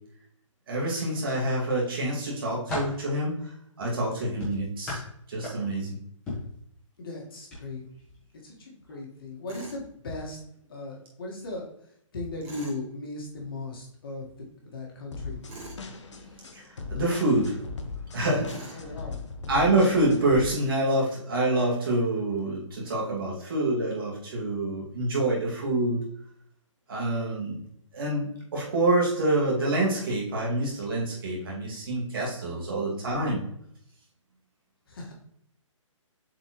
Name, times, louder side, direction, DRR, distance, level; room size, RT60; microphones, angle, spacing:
voice 1, 0.7-3.5 3.8-5.0 5.3-6.0 16.5-16.6 16.9-17.6 18.1-18.8 19.5-26.0 26.9-27.6 27.9-33.4, right 2 dB, 45° right, -4 dB, 2.3 m, -26 dB
sound 1, 0.9-1.7 2.2-3.0 4.4-5.8 6.3-6.6 7.4-7.6 8.0-8.2, left 2 dB, 5° left, 1.4 m, -36 dB
voice 2, 7.0-7.8 8.4-10.4 10.7-11.7 12.1-14.3 14.6-15.4 18.7-19.2 32.4-32.8 34.9-35.1, left 2 dB, 45° left, -2 dB, 1.7 m, -37 dB
Tools, 9.5-9.8 12.4-12.8 15.4-15.8 18.4-18.9, right 3 dB, 25° right, 2.4 m, -43 dB
sound 2, 15.1-20.5, left 4 dB, 60° left, 1.0 m, -39 dB
7.2 x 4.4 x 3.1 m, 0.70 s
hypercardioid pair, 175°, 17 cm